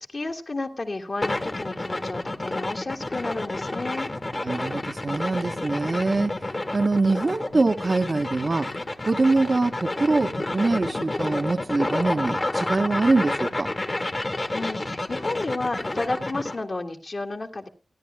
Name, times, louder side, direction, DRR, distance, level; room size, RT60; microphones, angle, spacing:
voice 1, 0.0-4.1 14.5-17.7, left 2 dB, 50° left, 2.1 m, -31 dB
sound 1, 1.2-16.6, left 2 dB, 35° left, 1.6 m, -30 dB
voice 2, 4.3-6.3 6.7-8.7 9.1-13.7, right 3 dB, 45° right, 1.0 m, -24 dB
29.0 x 10.5 x 2.2 m
cardioid pair, 45°, 0 cm